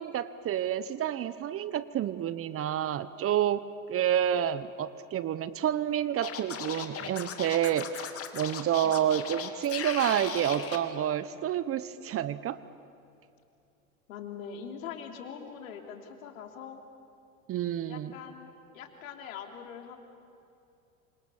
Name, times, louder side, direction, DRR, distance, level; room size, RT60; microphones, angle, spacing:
voice 1, 0.0-3.6 3.9-12.6 17.5-18.1, right 10 dB, 30° right, 15 dB, 1.0 m, -29 dB
Scratching (performance technique), 6.2-10.8, left 8 dB, 35° left, 2.7 m, -37 dB
voice 2, 8.8-9.2 14.1-16.8 17.9-20.0, left 7 dB, 70° left, 4 dB, 3.5 m, -43 dB
27.5 x 26.0 x 7.3 m, 2.6 s
hypercardioid pair, 95°, 42 cm